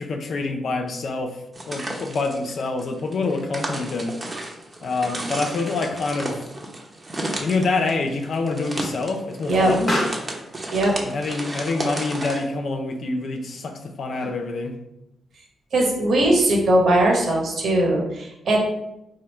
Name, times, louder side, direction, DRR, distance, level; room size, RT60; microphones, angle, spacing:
voice 1, 0.0-4.2 4.8-6.4 7.4-10.0 11.0-14.8, left 3 dB, 65° left, 5 dB, 0.6 m, -26 dB
sound 1, 1.5-12.4, right 1 dB, 30° right, 0.9 m, -33 dB
Explosion, 6.6-14.7, left 1 dB, 35° left, 1.1 m, -36 dB
voice 2, 15.7-18.6, right 1 dB, 70° right, -1 dB, 1.2 m, -19 dB
3.7 x 2.1 x 4.4 m, 0.86 s
cardioid pair, 60°, 0 cm